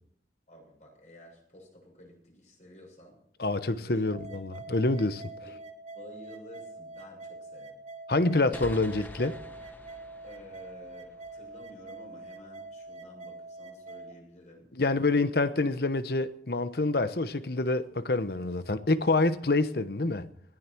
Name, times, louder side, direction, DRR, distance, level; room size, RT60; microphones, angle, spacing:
voice 1, 0.5-3.2 3.7-4.1 5.4-5.6 5.9-7.8 10.2-14.7, equal, 40° left, 6.9 m, -51 dB
voice 2, 3.4-5.2 8.1-9.4 14.8-20.3, left 2 dB, 60° left, 0.9 m, -27 dB
sound 1, 4.1-14.1, right 2 dB, 35° right, 1.4 m, -45 dB
sound 2, 8.5-12.0, left 1 dB, 10° left, 1.1 m, -47 dB
20.0 x 15.0 x 4.6 m
head